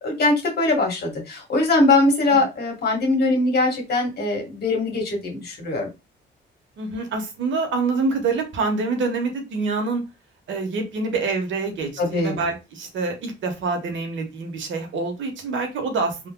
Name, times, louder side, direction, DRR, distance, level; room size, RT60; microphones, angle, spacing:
voice 1, 0.0-5.9 12.0-12.4, left 2 dB, 55° left, 1 dB, 1.6 m, -21 dB
voice 2, 6.8-10.0 10.5-16.3, right 4 dB, 70° right, 4 dB, 1.2 m, -26 dB
3.7 x 2.5 x 2.2 m, 0.26 s
cardioid pair, 90°, 20 cm